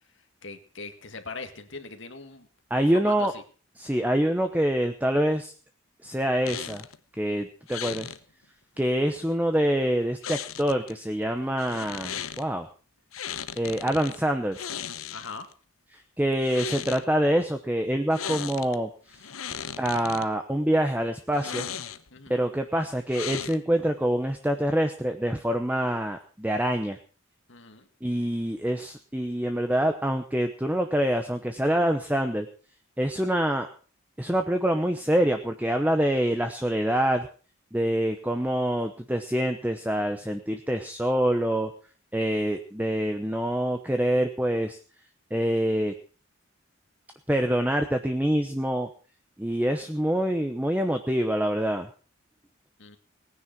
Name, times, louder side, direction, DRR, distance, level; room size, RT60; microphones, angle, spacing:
voice 1, 0.4-2.5 2.8-3.4 15.1-15.5 22.1-22.4 27.5-27.9 52.8-53.0, left 3 dB, 65° left, 7 dB, 1.8 m, -40 dB
voice 2, 2.7-3.3 3.8-5.5 6.0-6.8 7.2-8.1 8.8-12.7 13.6-14.7 16.2-18.9 19.8-21.7 22.3-27.0 28.0-32.5 33.0-33.7 34.2-37.3 37.7-41.7 42.1-44.8 45.3-45.9 47.3-48.9 49.4-51.9, right 1 dB, 10° right, 6 dB, 0.8 m, -25 dB
sound 1, 6.4-7.0 7.7-8.2 10.2-10.9 11.6-12.4 13.1-14.2 14.5-15.5 16.3-17.0 18.1-18.8 19.1-20.2 21.3-22.2 23.1-23.8, left 8 dB, 90° left, 0.9 m, -36 dB
18.5 x 9.8 x 5.9 m, 0.39 s
head